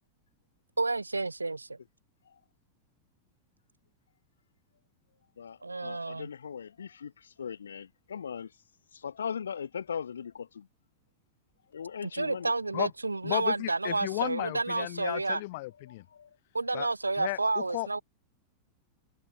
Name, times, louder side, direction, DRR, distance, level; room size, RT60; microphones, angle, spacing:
voice 1, 0.8-1.8 5.6-6.3 12.0-15.4 16.5-18.0, right 3 dB, 80° right, 0.6 m, -30 dB
voice 2, 5.4-8.5 8.9-10.7 11.7-12.5 16.1-16.3, left 7 dB, 70° left, 1.5 m, -39 dB
voice 3, 13.2-16.0 16.7-16.9 17.2-17.9, left 21 dB, 50° left, 0.5 m, -34 dB
figure-of-eight pair, 90°, 0 cm